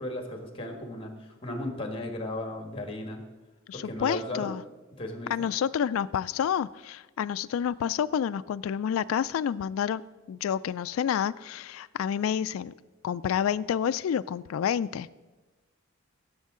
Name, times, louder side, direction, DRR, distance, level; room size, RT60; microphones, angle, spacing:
voice 1, 0.0-3.2 3.7-4.5 5.0-5.5, left 1 dB, 25° left, 4 dB, 1.5 m, -35 dB
voice 2, 3.7-4.6 5.3-10.0 10.3-12.7 13.0-15.1, left 8 dB, 75° left, 14 dB, 0.3 m, -29 dB
15.5 x 7.2 x 3.7 m, 1.2 s
head